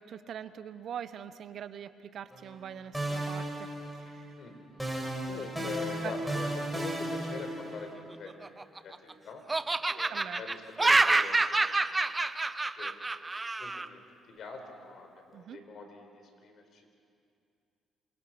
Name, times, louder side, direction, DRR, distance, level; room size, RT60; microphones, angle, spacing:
voice 1, 0.0-3.7 4.0-4.3 5.6-5.7 6.0-6.1 9.9-10.4 15.3-15.6, right 9 dB, 65° right, 13 dB, 1.0 m, -43 dB
sound 1, 2.3-2.7 2.9-4.4 4.8-7.9, right 1 dB, ahead, 6.4 m, -35 dB
voice 2, 5.3-9.4 9.9-11.7 12.8-13.0 13.6-14.0 14.3-16.8, left 4 dB, 60° left, 5 dB, 4.9 m, -44 dB
Laughter, 8.3-9.1 9.5-13.9, right 3 dB, 20° right, 0.9 m, -27 dB
28.0 x 27.0 x 6.2 m, 2.5 s
cardioid pair, 80°, 0 cm